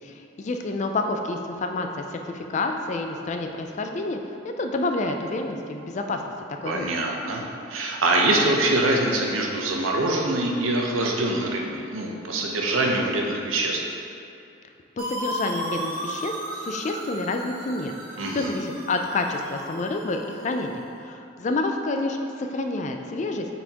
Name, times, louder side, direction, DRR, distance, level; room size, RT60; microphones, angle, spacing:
voice 1, 0.0-4.2 4.6-6.2 6.6-6.9 15.0-17.9 18.3-23.5, left 2 dB, 35° left, 4 dB, 0.3 m, -28 dB
voice 2, 6.6-7.4 7.7-13.8 18.2-18.5, right 2 dB, 80° right, 0 dB, 0.8 m, -24 dB
sound 1, 15.0-20.8, equal, 45° right, 1.1 m, -35 dB
7.9 x 4.2 x 2.9 m, 2.6 s
head